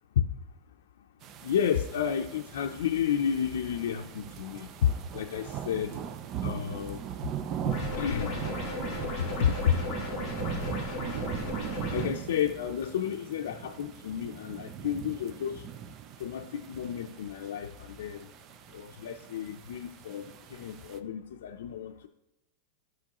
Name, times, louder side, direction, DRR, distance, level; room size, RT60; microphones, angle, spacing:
sound 1, 1.2-21.0, right 9 dB, 25° right, 0.4 m, -40 dB
voice 1, 1.4-5.9 6.4-7.0 8.0-8.4 9.2-9.8 11.9-15.6 16.2-18.3 18.7-22.1, left 9 dB, 85° left, 2 dB, 0.5 m, -31 dB
sound 2, 7.7-12.1, left 2 dB, 15° left, 2.4 m, -35 dB
12.5 x 6.3 x 3.0 m, 0.90 s
supercardioid pair, 175°, 0 cm